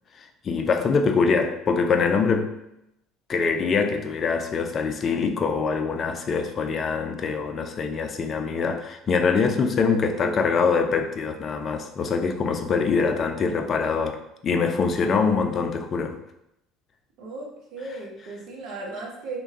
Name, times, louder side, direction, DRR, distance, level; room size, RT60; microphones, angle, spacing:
voice 1, 0.2-2.6 3.3-14.2 14.4-16.2, left 5 dB, 40° left, 5 dB, 0.4 m, -24 dB
voice 2, 10.1-10.4 12.9-13.7 17.2-19.4, right 3 dB, 55° right, -2 dB, 0.8 m, -37 dB
3.3 x 2.2 x 2.8 m, 0.81 s
figure-of-eight pair, 60°, 0 cm